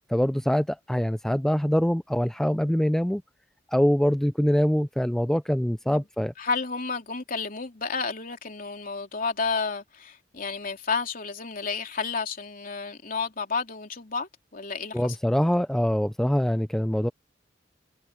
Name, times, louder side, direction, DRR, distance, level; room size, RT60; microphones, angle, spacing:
voice 1, 0.1-3.2 3.7-6.3 14.9-17.1, equal, 5° left, 0.3 m, -24 dB
voice 2, 6.4-15.2, left 4 dB, 50° left, 3.4 m, -31 dB
head